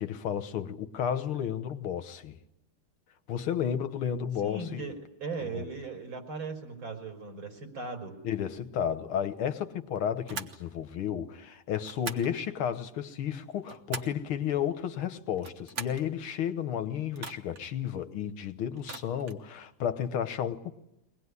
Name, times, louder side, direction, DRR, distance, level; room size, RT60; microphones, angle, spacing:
voice 1, 0.0-2.4 3.3-4.9 5.4-5.7 8.2-20.8, left 9 dB, 75° left, 2.0 m, -32 dB
voice 2, 4.4-8.1, right 3 dB, 65° right, 5.3 m, -38 dB
sound 1, 10.3-10.6 11.8-12.3 13.4-14.2 15.3-16.1 17.1-17.7 18.8-19.4, right 5 dB, 40° right, 1.3 m, -41 dB
23.0 x 19.5 x 9.7 m
omnidirectional pair, 2.4 m